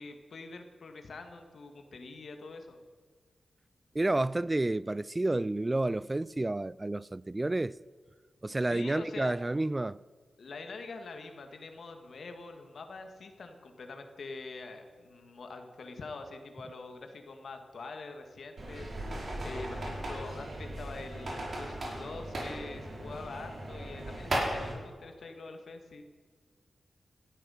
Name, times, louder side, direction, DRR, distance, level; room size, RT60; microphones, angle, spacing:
voice 1, 0.0-2.8 8.7-9.4 10.4-26.0, left 3 dB, 70° left, 1.8 m, -45 dB
voice 2, 3.9-7.8 8.4-10.0, right 2 dB, 25° right, 0.4 m, -30 dB
sound 1, 18.6-24.7, right 1 dB, 60° right, 4.7 m, -37 dB
17.0 x 12.0 x 5.7 m
cardioid pair, 60°, 0 cm